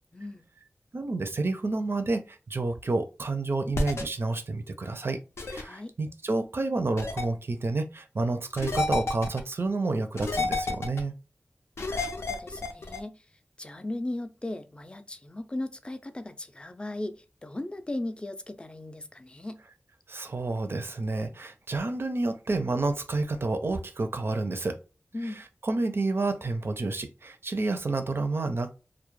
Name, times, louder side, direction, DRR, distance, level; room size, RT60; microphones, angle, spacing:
voice 1, 0.1-0.4 5.6-5.9 11.8-13.2 13.6-19.6 25.1-25.4, left 1 dB, 25° left, 0.4 m, -37 dB
voice 2, 0.9-5.2 5.4-11.2 20.1-24.8 25.6-28.7, right 3 dB, 60° right, 0.4 m, -29 dB
sound 1, 3.7-4.0 5.4-5.6 7.0-7.2 8.6-9.4 10.2-11.0 11.8-13.0, left 3 dB, 90° left, 0.4 m, -30 dB
2.3 x 2.0 x 3.0 m
wide cardioid pair, 55°, 4 cm